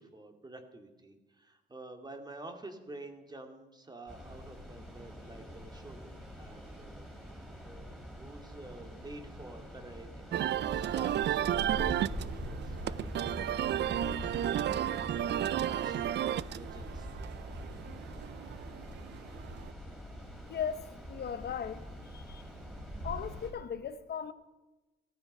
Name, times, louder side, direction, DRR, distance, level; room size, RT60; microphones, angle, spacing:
voice 1, 0.0-14.4 14.7-17.2, right 2 dB, 20° right, 2.4 m, -50 dB
sound 1, 4.1-23.5, equal, ahead, 7.3 m, -44 dB
sound 2, 10.3-19.7, right 11 dB, 60° right, 0.5 m, -33 dB
voice 2, 20.5-22.4 23.0-24.3, left 7 dB, 55° left, 0.9 m, -38 dB
16.0 x 13.5 x 5.5 m
cardioid pair, 90°, 20 cm